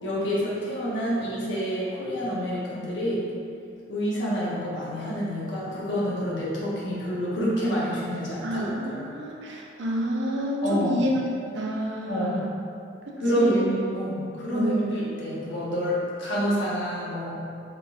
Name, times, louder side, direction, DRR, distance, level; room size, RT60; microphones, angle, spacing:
voice 1, 0.0-3.3 3.9-9.1 10.6-11.0 12.1-12.4 13.2-17.4, equal, 80° left, -7 dB, 1.0 m, -27 dB
voice 2, 8.4-11.1 11.5-12.5 13.1-13.7 14.5-14.9, equal, 75° right, -1 dB, 0.5 m, -29 dB
3.7 x 3.5 x 2.5 m, 2.5 s
head